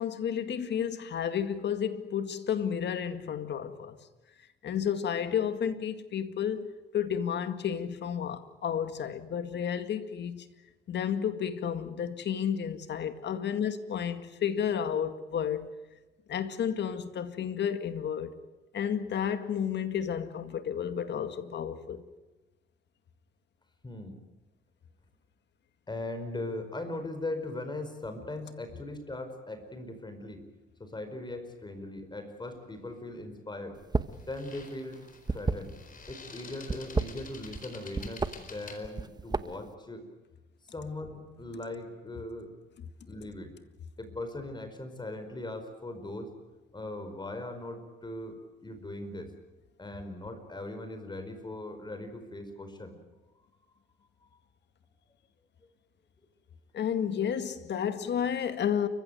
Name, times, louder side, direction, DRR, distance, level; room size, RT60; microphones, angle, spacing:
voice 1, 0.0-4.0 4.6-10.5 10.9-15.7 16.3-18.3 18.7-22.0 56.7-58.9, left 8 dB, 60° left, 2.1 m, -31 dB
voice 2, 23.8-24.2 25.9-30.5 30.8-33.8 34.2-35.0 35.3-35.8 36.1-40.1 40.7-42.5 43.1-43.5 44.0-46.3 46.7-49.3 49.8-53.0, left 2 dB, 20° left, 4.9 m, -39 dB
sound 1, 32.4-32.7 34.1-38.8, left 4 dB, 45° left, 4.3 m, -49 dB
sound 2, 33.8-34.2 34.5-36.1 36.6-37.7 37.9-38.3 38.8-39.7, right 3 dB, 20° right, 1.1 m, -31 dB
29.5 x 15.5 x 9.2 m
cardioid pair, 90°, 20 cm